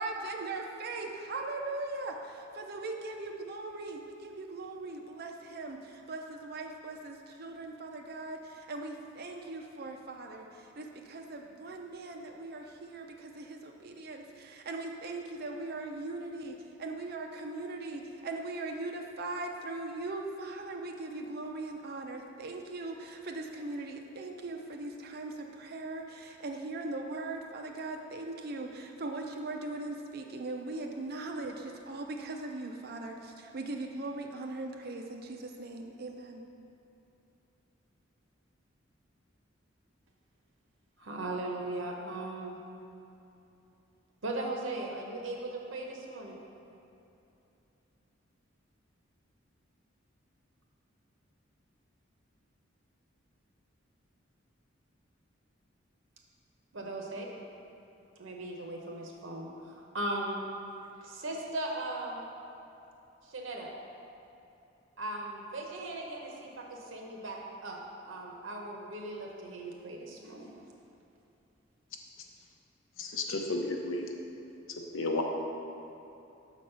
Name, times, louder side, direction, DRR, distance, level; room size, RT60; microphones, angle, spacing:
voice 1, 0.0-10.5 10.8-36.4, right 2 dB, 50° right, 2 dB, 0.6 m, -40 dB
voice 2, 41.0-42.6 44.2-46.4 56.7-57.3 58.2-60.4 61.0-62.2 63.3-63.7 65.0-70.5, right 2 dB, 75° right, 0 dB, 0.9 m, -38 dB
voice 3, 73.0-74.0 74.9-75.2, left 2 dB, 90° left, 2 dB, 0.7 m, -32 dB
6.2 x 4.2 x 5.5 m, 2.9 s
head